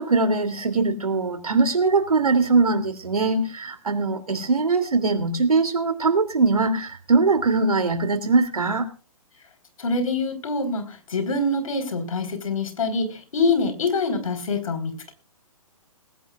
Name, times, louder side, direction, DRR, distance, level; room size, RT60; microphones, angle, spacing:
voice 1, 0.0-8.9, right 3 dB, 85° right, 2.9 m, -21 dB
voice 2, 9.8-15.1, left 3 dB, 70° left, 4.5 m, -25 dB
19.5 x 17.5 x 2.5 m
hypercardioid pair, 135°, 19 cm